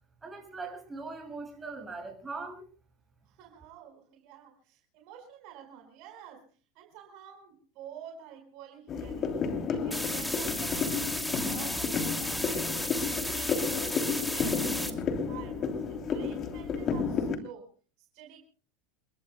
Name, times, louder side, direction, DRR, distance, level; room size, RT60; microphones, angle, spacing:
voice 1, 0.2-2.7, right 3 dB, 15° right, 3 dB, 7.2 m, -40 dB
voice 2, 3.3-6.5 6.7-9.4 9.7-11.0 11.4-15.0 15.3-18.4, right 8 dB, 55° right, 4 dB, 4.8 m, -50 dB
sound 1, 8.9-17.4, left 5 dB, 40° left, 3.0 m, -32 dB
sound 2, 9.9-14.9, left 1 dB, 5° left, 2.5 m, -34 dB
29.0 x 22.0 x 2.2 m, 0.38 s
hypercardioid pair, 85°, 0 cm